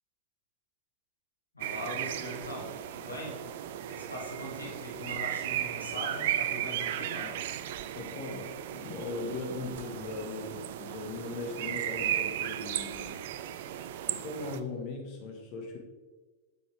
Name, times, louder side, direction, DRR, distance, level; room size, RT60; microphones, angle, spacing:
voice 1, 1.5-3.4 3.9-7.4, left 1 dB, 80° left, -3 dB, 2.2 m, -41 dB
sound 1, 1.6-14.6, right 11 dB, 55° right, 0.4 m, -35 dB
voice 2, 7.9-13.2 14.1-15.8, left 3 dB, 45° left, 2 dB, 1.4 m, -39 dB
8.4 x 7.0 x 3.5 m, 1.3 s
figure-of-eight pair, 90°, 0 cm